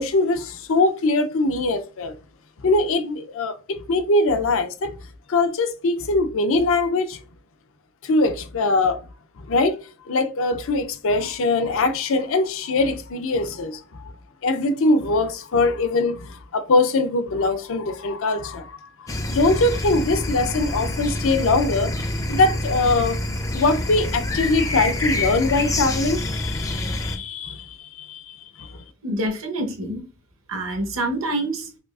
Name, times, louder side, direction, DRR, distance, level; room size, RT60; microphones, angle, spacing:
voice 1, 0.0-2.2 2.6-5.0 5.3-7.2 8.0-9.0 9.4-9.8 10.1-14.1 14.4-22.0 22.3-23.2 23.5-28.8, left 2 dB, 65° left, 0.5 m, -22 dB
sound 1, 19.1-27.2, left 1 dB, 15° left, 0.4 m, -27 dB
voice 2, 29.0-30.0 30.5-31.7, right 1 dB, 65° right, 0.9 m, -26 dB
4.9 x 2.3 x 2.4 m
head